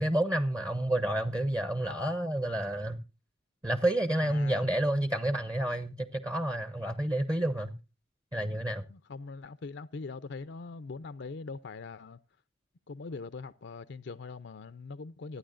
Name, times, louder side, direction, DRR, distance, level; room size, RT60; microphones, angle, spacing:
voice 1, 0.0-3.0 3.6-7.7 8.3-8.9, right 1 dB, 20° right, 0.8 m, -29 dB
voice 2, 4.2-4.7 8.9-12.2 12.9-15.4, left 4 dB, 60° left, 0.5 m, -42 dB
25.5 x 9.5 x 2.5 m
head